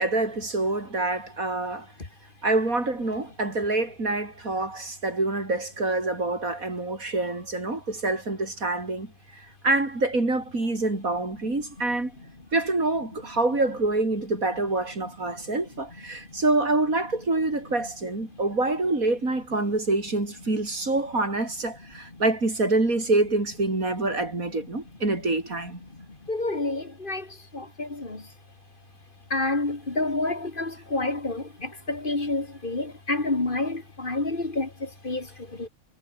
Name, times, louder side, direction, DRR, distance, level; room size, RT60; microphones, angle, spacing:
voice 1, 0.0-1.9 2.4-9.1 9.6-12.1 12.5-25.8, right 2 dB, 85° right, 5.6 m, -26 dB
voice 2, 26.0-28.3 29.3-35.7, left 2 dB, 40° left, 2.6 m, -29 dB
omnidirectional pair, 1.4 m